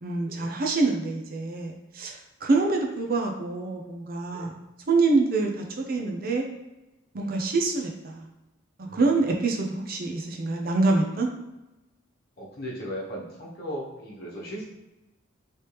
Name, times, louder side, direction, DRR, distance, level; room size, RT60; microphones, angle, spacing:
voice 1, 0.0-4.5 4.9-6.4 7.1-8.3 8.9-11.3, right 3 dB, 45° right, 1 dB, 0.5 m, -26 dB
voice 2, 12.4-14.7, equal, 50° left, -5 dB, 1.0 m, -37 dB
3.3 x 3.1 x 2.9 m, 1.0 s
head